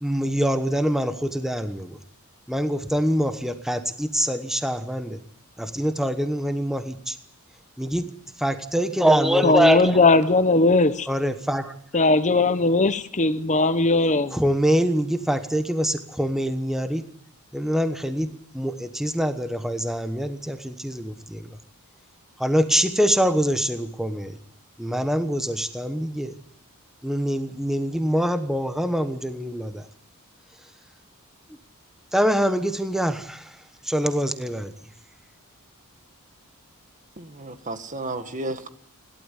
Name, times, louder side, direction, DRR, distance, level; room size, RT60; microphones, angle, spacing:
voice 1, 0.0-2.0 2.5-5.2 5.6-7.2 7.8-10.0 11.1-11.8 14.3-17.0 17.5-21.6 22.4-24.4 24.8-26.3 27.0-29.9 32.1-34.7, equal, ahead, 1.1 m, -24 dB
voice 2, 9.4-11.1 11.9-14.4, left 3 dB, 35° left, 1.0 m, -19 dB
voice 3, 37.2-38.7, right 2 dB, 35° right, 1.7 m, -33 dB
29.5 x 12.5 x 9.9 m
head